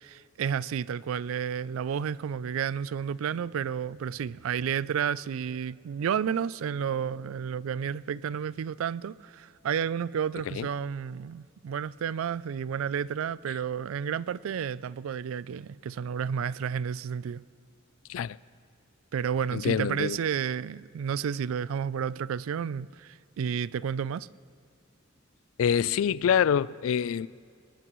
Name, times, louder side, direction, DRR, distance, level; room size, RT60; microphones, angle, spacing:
voice 1, 0.0-17.4 19.1-24.3, right 7 dB, 80° right, 0.3 m, -31 dB
voice 2, 19.5-20.2 25.6-27.3, left 8 dB, 75° left, 0.3 m, -26 dB
23.5 x 20.0 x 3.1 m
head